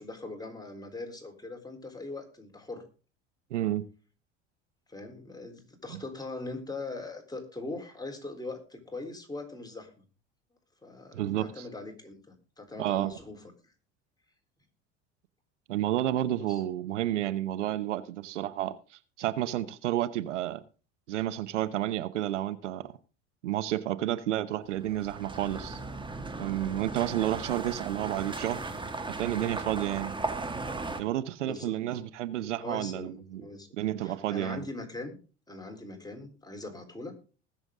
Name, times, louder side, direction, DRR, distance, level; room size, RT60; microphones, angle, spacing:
voice 1, 0.0-2.8 4.9-9.9 10.8-13.4 16.4-16.6 31.4-31.8 32.6-33.7 34.0-35.2 35.5-37.2, left 2 dB, 10° left, 3.8 m, -41 dB
voice 2, 3.5-3.8 5.9-6.0 11.1-11.7 12.8-13.1 15.7-20.6 21.1-22.9 23.4-25.8 26.4-28.7 29.1-30.1 31.0-33.4 33.8-34.6, right 13 dB, 85° right, 0.9 m, -31 dB
sound 1, 24.7-31.0, right 3 dB, 15° right, 2.0 m, -37 dB
20.5 x 7.1 x 3.7 m
hypercardioid pair, 75°, 35 cm